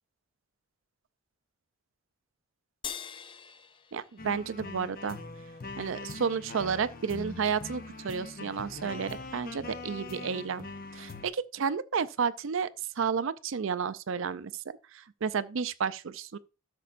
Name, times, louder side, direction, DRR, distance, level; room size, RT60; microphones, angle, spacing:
sound 1, 2.8-5.4, left 7 dB, 25° left, 0.4 m, -44 dB
voice 1, 3.9-5.2 5.8-10.7 10.9-12.7 13.0-14.5 14.9-16.4, right 6 dB, 65° right, 0.5 m, -31 dB
sound 2, 4.2-11.3, left 3 dB, 45° left, 0.9 m, -42 dB
12.5 x 6.8 x 2.5 m
head